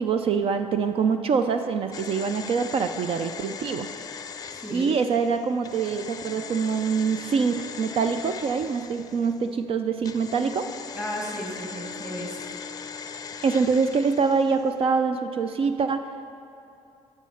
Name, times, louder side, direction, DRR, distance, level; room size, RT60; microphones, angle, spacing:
voice 1, 0.0-3.9 4.7-10.7 13.4-16.0, right 5 dB, 50° right, 8 dB, 0.5 m, -25 dB
sound 1, 1.9-9.5 10.0-14.7 15.0-15.1, left 6 dB, 30° left, 0.5 m, -39 dB
voice 2, 4.5-4.9 10.9-12.5, equal, 5° right, -2 dB, 2.0 m, -34 dB
10.5 x 7.4 x 5.7 m, 2.7 s
cardioid pair, 125°, 12 cm